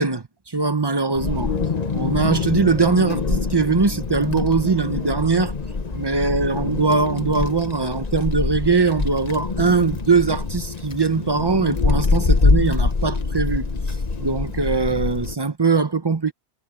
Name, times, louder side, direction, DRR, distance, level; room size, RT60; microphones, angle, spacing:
voice 1, 0.0-1.5 1.9-5.5 5.9-13.7 14.2-16.3, right 4 dB, 25° right, 0.9 m, -21 dB
Wind, 1.1-15.3, left 4 dB, 40° left, 1.2 m, -24 dB
omnidirectional pair, 1.1 m